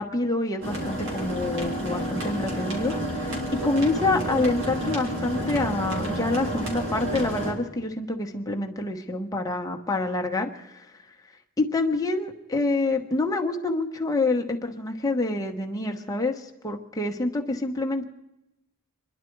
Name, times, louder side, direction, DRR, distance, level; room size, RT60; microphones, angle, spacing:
voice 1, 0.0-3.3 3.6-10.9 11.6-18.0, left 2 dB, 15° left, 2 dB, 1.2 m, -27 dB
sound 1, 0.6-7.5, right 1 dB, 60° right, 3.6 m, -30 dB
27.5 x 11.0 x 4.7 m, 0.92 s
head